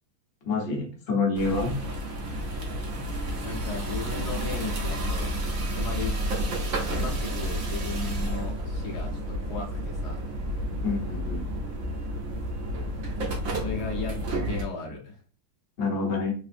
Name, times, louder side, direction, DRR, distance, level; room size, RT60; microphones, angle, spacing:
voice 1, 0.4-1.8 10.8-11.4 15.8-16.3, left 4 dB, 85° left, -1 dB, 0.5 m, -27 dB
sound 1, 1.3-14.6, right 1 dB, 80° right, 0.7 m, -30 dB
voice 2, 3.4-5.3 5.7-6.2 6.9-10.2 13.6-14.2 14.5-15.2, left 4 dB, 65° left, -1 dB, 1.0 m, -36 dB
3.5 x 2.5 x 2.5 m, 0.41 s
omnidirectional pair, 2.4 m